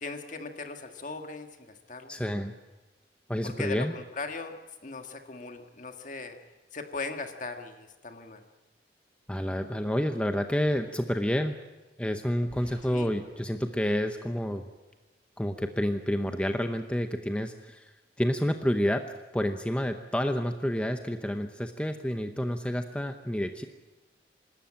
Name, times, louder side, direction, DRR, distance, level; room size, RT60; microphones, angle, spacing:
voice 1, 0.0-2.2 3.4-4.5 4.8-6.4 6.7-8.4 12.9-13.1 22.1-22.2, left 3 dB, 45° left, 5 dB, 1.8 m, -39 dB
voice 2, 2.1-2.5 3.3-3.9 9.3-11.6 12.0-14.6 15.4-17.9 18.2-19.1 19.3-23.7, equal, 5° left, 6 dB, 0.8 m, -29 dB
sound 1, 12.5-15.5, equal, 35° right, 5.0 m, -54 dB
26.0 x 13.0 x 8.8 m, 1.2 s
head